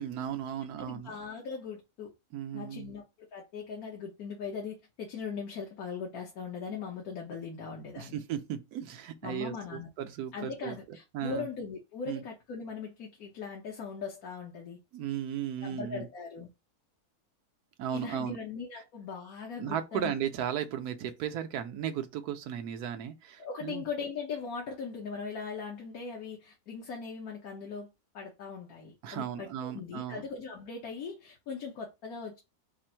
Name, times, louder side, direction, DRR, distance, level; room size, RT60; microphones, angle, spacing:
voice 1, 0.0-1.1 2.3-2.9 8.0-11.5 12.1-12.2 14.9-16.1 17.8-18.4 19.6-23.8 29.0-30.2, right 9 dB, 85° right, 1.2 m, -36 dB
voice 2, 0.8-2.1 2.5-8.2 9.2-14.8 15.6-16.5 17.9-20.1 23.4-27.9 28.1-32.4, left 5 dB, 75° left, 1.5 m, -40 dB
4.5 x 2.5 x 4.4 m
omnidirectional pair, 1.6 m